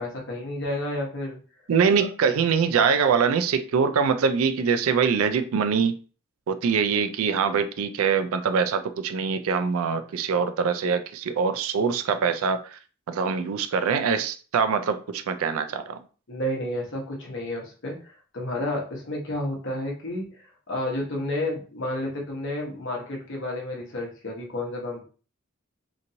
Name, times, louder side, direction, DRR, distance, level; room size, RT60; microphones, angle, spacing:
voice 1, 0.0-1.4 2.0-2.1 16.3-20.3 20.7-25.0, left 1 dB, 55° left, 1.0 m, -31 dB
voice 2, 1.7-6.0 6.5-12.8 13.1-16.0, right 6 dB, 75° right, 0.4 m, -23 dB
2.9 x 2.6 x 2.7 m
head